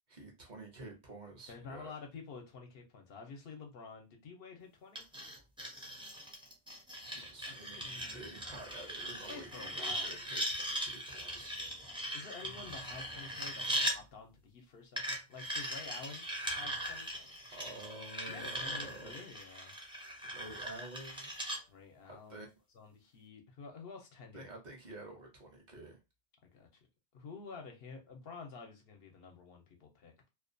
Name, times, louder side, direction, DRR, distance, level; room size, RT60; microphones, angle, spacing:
voice 1, 0.1-1.9 7.1-11.6 17.5-19.2 20.3-21.3 22.1-22.5 24.3-26.0, right 2 dB, 50° right, 1 dB, 0.8 m, -50 dB
voice 2, 1.5-5.0 7.5-8.2 9.3-10.2 11.4-16.3 16.5-17.4 18.3-19.7 21.7-22.5 22.7-24.5 26.5-26.7 27.1-30.3, left 4 dB, 70° left, 3 dB, 0.8 m, -50 dB
sound 1, 4.9-14.0 15.0-21.6, equal, 5° right, 0.5 m, -39 dB
2.5 x 2.2 x 2.5 m, 0.25 s
omnidirectional pair, 1.0 m